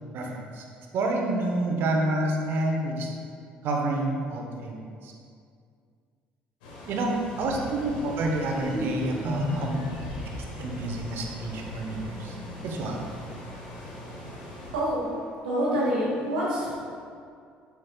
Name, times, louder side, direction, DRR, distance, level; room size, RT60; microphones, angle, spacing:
voice 1, 0.1-0.6 0.9-3.1 3.6-4.8 5.0-5.1 6.9-9.8 10.6-12.4 12.6-13.0, right 2 dB, 65° right, 1 dB, 1.0 m, -28 dB
sound 1, 6.6-14.7, left 1 dB, 85° left, 1.2 m, -40 dB
voice 2, 8.6-8.9 9.2-9.8 10.5-10.6 14.7-16.7, equal, 90° right, -9 dB, 1.4 m, -28 dB
7.4 x 6.1 x 2.3 m, 2.3 s
hypercardioid pair, 60°, 4 cm